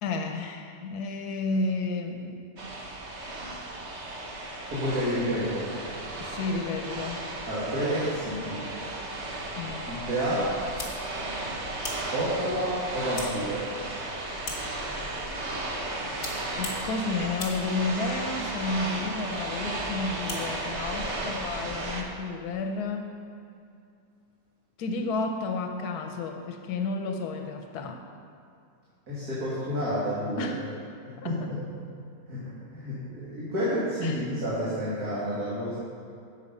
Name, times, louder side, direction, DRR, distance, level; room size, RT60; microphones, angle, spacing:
voice 1, 0.0-2.4 6.2-7.2 9.6-9.9 16.6-23.1 24.8-28.0 30.4-30.7 31.2-31.5 34.0-34.2, left 3 dB, 90° left, 4 dB, 1.3 m, -31 dB
sound 1, 2.6-22.0, right 2 dB, 50° right, 1.2 m, -35 dB
voice 2, 4.7-5.7 7.5-8.6 9.9-10.5 12.1-13.7 29.1-30.5 31.1-31.6 32.3-35.8, equal, 80° right, -10 dB, 2.6 m, -29 dB
sound 2, 10.6-22.0, left 2 dB, 55° left, 2.0 m, -43 dB
9.6 x 7.4 x 5.4 m, 2.5 s
omnidirectional pair, 1.6 m